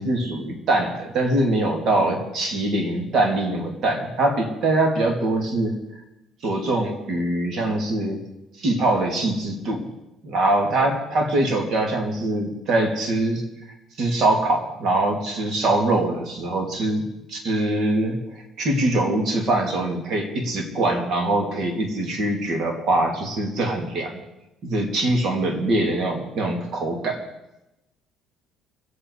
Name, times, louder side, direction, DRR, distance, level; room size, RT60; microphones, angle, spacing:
voice 1, 0.0-5.8 6.4-8.2 8.6-9.9 10.2-13.4 14.0-24.2 24.6-27.2, right 2 dB, 55° right, 2 dB, 3.0 m, -23 dB
25.5 x 8.6 x 4.9 m, 0.94 s
cardioid pair, 135°, 0 cm